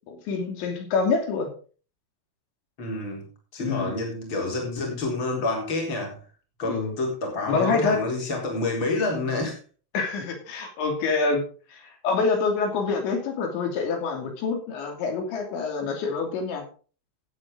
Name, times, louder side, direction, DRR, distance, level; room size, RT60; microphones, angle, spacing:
voice 1, 0.1-1.5 3.6-3.9 6.6-7.0 7.5-8.0 9.9-11.4 11.7-16.6, left 4 dB, 65° left, 3 dB, 4.9 m, -26 dB
voice 2, 2.8-3.3 3.5-6.2 6.6-9.6, left 2 dB, 25° left, 0 dB, 4.1 m, -28 dB
15.5 x 8.8 x 3.9 m, 0.38 s
omnidirectional pair, 5.8 m